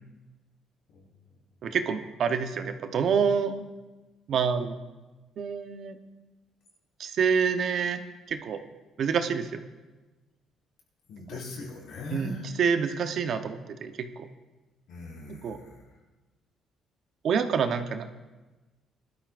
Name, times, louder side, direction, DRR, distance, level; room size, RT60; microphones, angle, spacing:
voice 1, 1.6-3.7 4.3-4.8 5.4-6.0 7.0-8.0 8.3-8.6 9.0-9.6 12.1-14.3 15.3-15.6 17.2-18.1, right 6 dB, 50° right, 7 dB, 0.9 m, -27 dB
voice 2, 11.1-12.5 14.9-15.8, left 2 dB, 75° left, -2 dB, 4.3 m, -40 dB
20.5 x 12.5 x 2.5 m, 1.2 s
cardioid pair, 155°, 0 cm